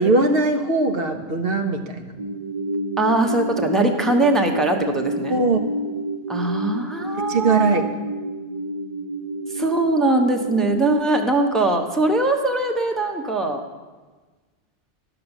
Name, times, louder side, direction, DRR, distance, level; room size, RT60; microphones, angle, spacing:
voice 1, 0.0-2.1 5.3-5.6 7.3-7.8, right 3 dB, 60° right, 5 dB, 1.1 m, -20 dB
sound 1, 2.2-10.9, right 2 dB, 40° right, 0.6 m, -29 dB
voice 2, 3.0-5.4 6.3-7.9 9.5-13.6, right 2 dB, ahead, 2 dB, 1.0 m, -21 dB
12.5 x 6.8 x 8.9 m, 1.3 s
omnidirectional pair, 1.1 m